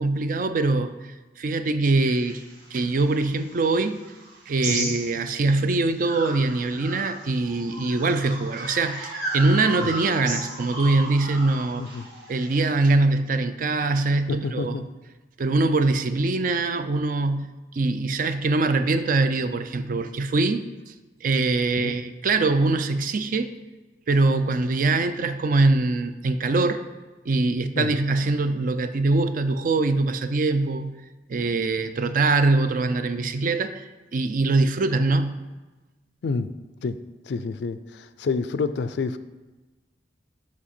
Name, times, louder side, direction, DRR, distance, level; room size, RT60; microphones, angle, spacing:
voice 1, 0.0-2.4 2.7-4.0 4.5-11.9 12.3-14.8 15.4-20.9 21.2-23.5 24.1-26.8 27.2-31.0 31.3-35.4, right 3 dB, 50° right, 10 dB, 0.4 m, -23 dB
sound 1, 2.0-5.6 6.0-12.7, right 2 dB, 80° right, 2.0 m, -35 dB
voice 2, 14.3-14.8 21.8-21.9 27.8-27.9 36.2-36.5 36.8-37.0 37.3-39.2, left 4 dB, 75° left, 13 dB, 0.4 m, -28 dB
7.3 x 5.8 x 4.3 m, 1.2 s
head